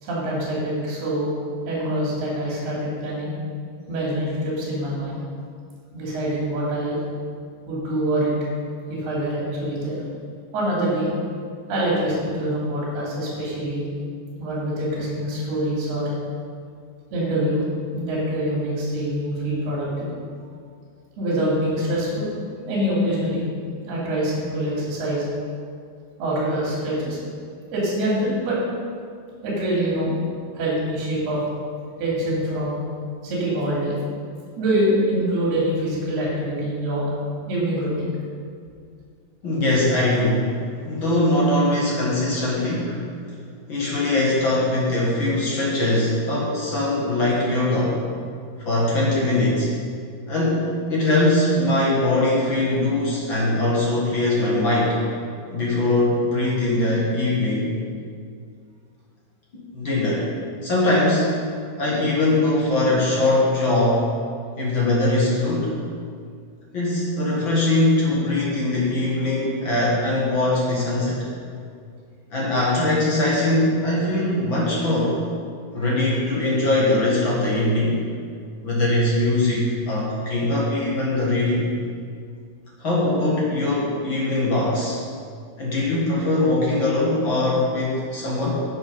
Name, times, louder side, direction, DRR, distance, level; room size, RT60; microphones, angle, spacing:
voice 1, 0.0-1.3 1.6-3.3 3.9-5.2 5.9-7.0 7.7-8.3 8.9-10.0 10.5-11.1 11.7-13.9 14.4-16.2 17.1-17.7 17.9-20.1 21.2-22.3 22.7-23.4 23.9-25.3 26.2-27.2 27.7-28.6 29.4-30.2 30.5-31.4 32.0-32.8 33.2-34.0 34.6-37.1 37.4-38.1, right 1 dB, 80° right, -5 dB, 4.9 m, -25 dB
voice 2, 39.4-40.6 40.9-43.0 43.7-48.0 48.6-49.7 50.3-55.0 55.5-57.7 59.7-60.3 60.6-61.4 61.8-64.1 64.6-65.7 66.7-71.2 72.3-75.2 75.7-78.0 78.6-81.7 82.8-85.0 85.6-88.6, left 2 dB, 45° left, -5 dB, 1.6 m, -21 dB
11.0 x 6.5 x 5.4 m, 2.2 s
omnidirectional pair, 4.5 m